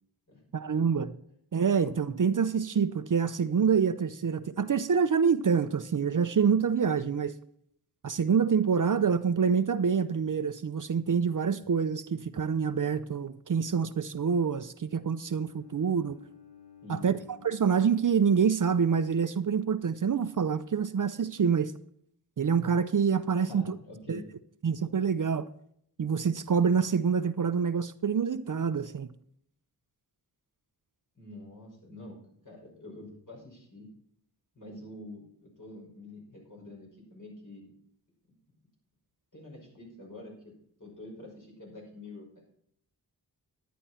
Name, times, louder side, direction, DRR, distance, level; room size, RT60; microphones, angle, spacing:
voice 1, 0.5-1.1 1.5-7.3 8.0-16.2 16.9-17.2 17.4-21.7 22.4-23.7 24.1-24.2 24.6-25.5 26.0-29.1, right 6 dB, 50° right, 0.7 m, -26 dB
Bowed string instrument, 14.8-19.0, left 8 dB, 75° left, 2.9 m, -55 dB
voice 2, 16.8-17.2 23.4-24.2 31.1-32.2 32.4-33.9 34.5-35.3 35.6-37.7 39.3-40.5 40.8-42.4, left 2 dB, 50° left, 5.7 m, -46 dB
11.0 x 10.0 x 4.3 m
wide cardioid pair, 65°, 40 cm